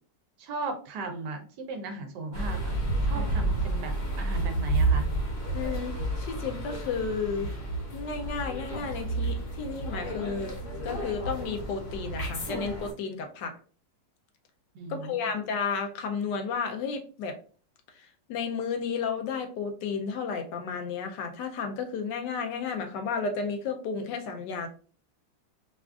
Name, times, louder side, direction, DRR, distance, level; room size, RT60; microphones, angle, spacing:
voice 1, 0.4-2.7 3.0-3.9 4.2-5.1 14.7-15.3, right 3 dB, 70° right, 5 dB, 1.2 m, -36 dB
sound 1, 2.3-12.9, right 2 dB, 50° left, 1.1 m, -30 dB
voice 2, 5.5-7.5 7.9-10.5 10.8-13.6 14.9-17.4 17.9-24.7, left 5 dB, 75° left, 5 dB, 1.2 m, -32 dB
4.9 x 2.4 x 2.3 m, 0.41 s
omnidirectional pair, 2.0 m